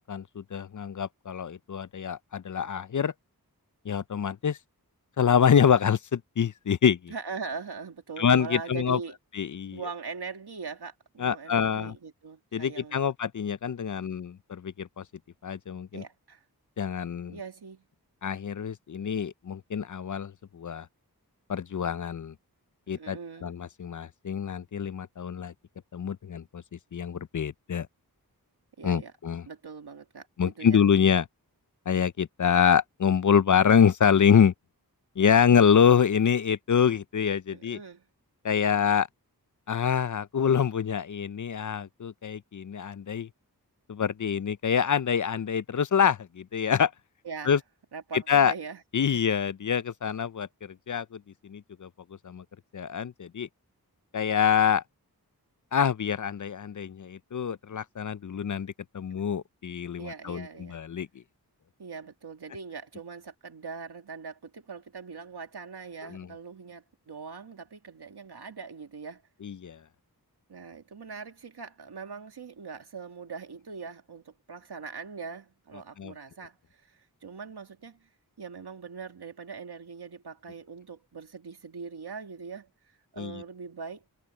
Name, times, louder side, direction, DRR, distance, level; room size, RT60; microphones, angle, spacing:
voice 1, 0.0-3.1 3.9-4.6 5.2-7.1 8.2-9.0 9.3-9.8 11.2-12.0 12.5-15.0 15.4-16.0 16.8-17.4 18.2-20.9 21.5-22.3 22.9-25.5 25.9-26.6 26.9-27.9 28.8-29.4 30.4-31.2 31.9-34.5 35.2-37.8 38.4-39.1 39.7-43.3 43.9-46.9 47.5-47.6 48.3-48.5 48.9-51.9 52.2-52.4 52.7-53.5 54.1-54.8 55.7-61.1 66.1-66.3 69.4-69.8 76.0-76.1 83.2-83.4, left 7 dB, 50° left, 0.5 m, -25 dB
voice 2, 7.1-9.2 9.7-13.1 15.9-16.4 17.3-17.9 22.9-23.6 28.8-29.1 29.5-30.8 37.5-38.0 47.2-47.6 47.9-48.8 49.1-49.2 60.0-60.8 61.8-69.2 70.5-78.1 78.4-84.1, right 5 dB, 90° right, 2.0 m, -41 dB
wide cardioid pair, 45°, 38 cm